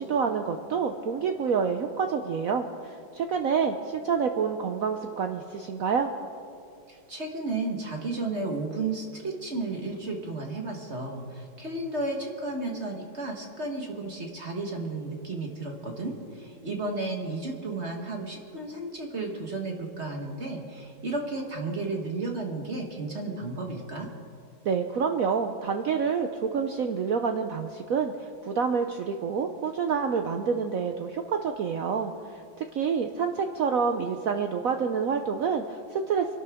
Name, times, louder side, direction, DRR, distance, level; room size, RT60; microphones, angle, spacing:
voice 1, 0.0-6.1 24.6-28.1 28.4-36.4, right 6 dB, 75° right, 6 dB, 0.8 m, -28 dB
voice 2, 6.9-24.1, right 2 dB, 40° right, 2 dB, 1.4 m, -33 dB
25.0 x 12.0 x 3.5 m, 2.4 s
omnidirectional pair, 2.2 m